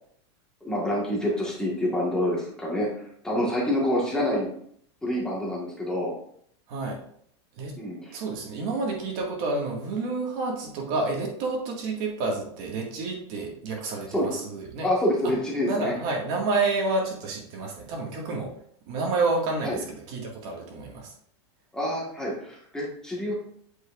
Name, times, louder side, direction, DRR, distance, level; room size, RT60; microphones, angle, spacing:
voice 1, 0.6-2.9 3.2-4.5 5.0-6.1 7.8-8.2 14.1-14.3 14.8-15.9 19.6-19.8 21.7-23.3, left 1 dB, 5° left, -5 dB, 1.7 m, -27 dB
voice 2, 6.7-7.0 7.6-7.8 8.1-14.9 15.2-15.3 15.6-18.5 18.9-21.1, right 3 dB, 45° right, 0 dB, 2.0 m, -29 dB
8.6 x 6.4 x 2.6 m, 0.65 s
supercardioid pair, 165°, 14 cm